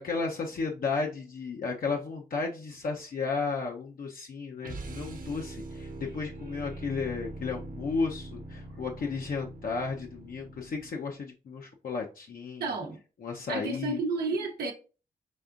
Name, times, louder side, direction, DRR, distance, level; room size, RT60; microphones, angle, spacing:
voice 1, 0.0-12.7 13.2-14.0, left 4 dB, 65° left, 0.7 m, -33 dB
sound 1, 4.6-11.1, right 2 dB, 60° right, 0.9 m, -42 dB
voice 2, 12.6-13.0 13.5-14.7, right 3 dB, 90° right, 0.7 m, -31 dB
5.3 x 3.4 x 2.4 m
cardioid pair, 70°, 16 cm